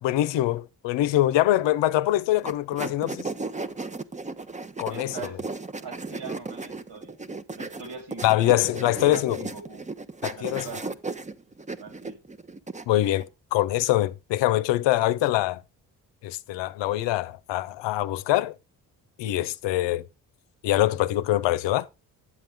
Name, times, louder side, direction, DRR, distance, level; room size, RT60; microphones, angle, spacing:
voice 1, 0.0-3.3 4.8-5.3 8.2-9.5 10.2-10.7 12.9-15.6 16.2-18.5 19.2-20.1 20.6-21.9, left 14 dB, 75° left, 0.7 m, -24 dB
sound 1, 2.4-13.3, right 3 dB, 15° right, 0.8 m, -35 dB
voice 2, 4.9-7.2 7.6-9.8 10.3-11.0 11.8-12.2, right 5 dB, 65° right, 3.8 m, -42 dB
9.8 x 7.6 x 3.4 m
supercardioid pair, 50°, 43 cm